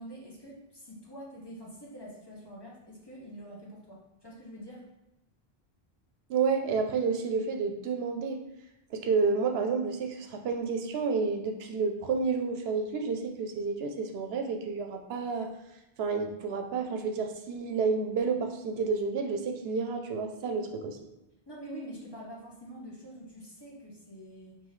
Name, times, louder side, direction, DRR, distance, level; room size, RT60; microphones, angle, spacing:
voice 1, 0.0-4.9 21.5-24.6, right 1 dB, 25° left, -4 dB, 0.8 m, -45 dB
voice 2, 6.3-8.4 8.9-15.5 16.0-21.0, right 4 dB, 80° right, 4 dB, 0.8 m, -30 dB
5.4 x 2.7 x 3.1 m, 0.90 s
omnidirectional pair, 1.0 m